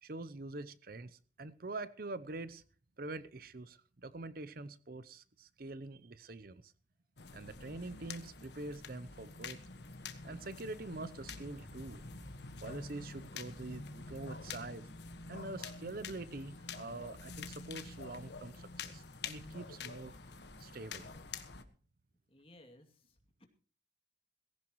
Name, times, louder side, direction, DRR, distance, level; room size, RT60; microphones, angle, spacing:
voice 1, 0.0-2.6 3.0-6.7 7.3-9.6 10.2-12.0 12.6-14.9 15.3-20.2 20.6-21.1, right 2 dB, 50° right, 0.7 m, -45 dB
sound 1, 7.2-21.6, left 4 dB, 65° left, 1.4 m, -47 dB
Explosion, 11.1-17.1 17.4-17.5, equal, 75° right, 2.1 m, -57 dB
voice 2, 22.3-23.5, left 1 dB, 30° left, 2.5 m, -60 dB
18.5 x 16.5 x 3.1 m
head